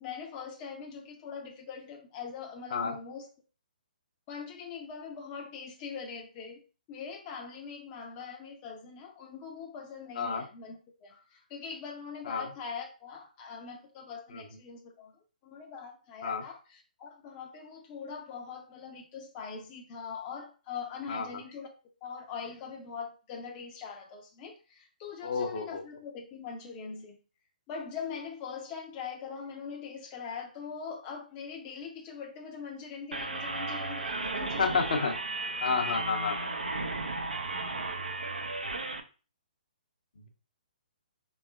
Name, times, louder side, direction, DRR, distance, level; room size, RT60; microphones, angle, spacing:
voice 1, 0.0-3.3 4.3-6.6 6.9-15.1 15.4-21.7 22.0-27.2 27.7-35.1, left 6 dB, 25° left, 0.5 m, -42 dB
voice 2, 25.2-25.8 34.6-35.1 35.6-36.3, left 5 dB, 60° left, 0.7 m, -30 dB
sound 1, 33.1-39.0, right 2 dB, 80° right, 0.5 m, -34 dB
3.5 x 3.1 x 2.3 m
figure-of-eight pair, 130°, 5 cm